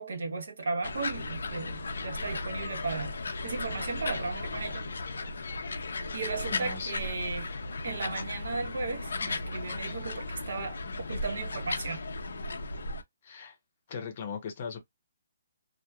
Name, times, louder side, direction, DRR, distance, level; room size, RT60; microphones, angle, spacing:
voice 1, 0.0-4.9 6.1-7.5 7.8-12.0, right 4 dB, 60° right, 1.0 m, -35 dB
sound 1, 0.8-13.0, left 3 dB, 75° left, 0.6 m, -36 dB
voice 2, 6.5-6.9 13.2-13.5 13.9-14.8, left 5 dB, 30° left, 0.8 m, -38 dB
2.9 x 2.1 x 2.3 m
hypercardioid pair, 180°, 0 cm